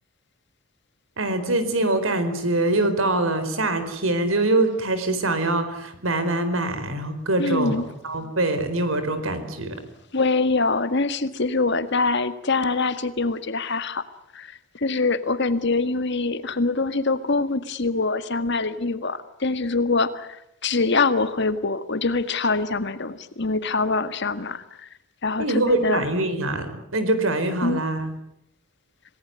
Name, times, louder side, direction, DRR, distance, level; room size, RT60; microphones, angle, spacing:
voice 1, 1.2-9.8 25.4-28.1, right 2 dB, 90° right, 10 dB, 4.5 m, -24 dB
voice 2, 7.4-7.8 10.1-14.1 14.3-24.9 25.2-26.1 27.6-27.8, left 3 dB, 60° left, 11 dB, 1.8 m, -24 dB
27.0 x 19.0 x 9.6 m, 0.80 s
head